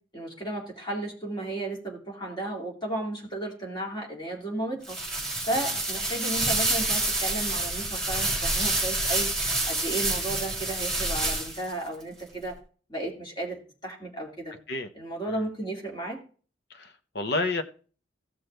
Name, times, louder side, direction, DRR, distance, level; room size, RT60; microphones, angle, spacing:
voice 1, 0.1-5.0 5.5-9.3 9.7-12.5 12.9-14.5 14.9-16.2, right 1 dB, 25° left, -1 dB, 2.5 m, -34 dB
sound 1, 4.8-11.7, right 2 dB, 5° left, 3.3 m, -28 dB
voice 2, 16.7-17.6, left 2 dB, 55° left, 7 dB, 0.9 m, -30 dB
15.5 x 6.2 x 3.3 m, 0.39 s
head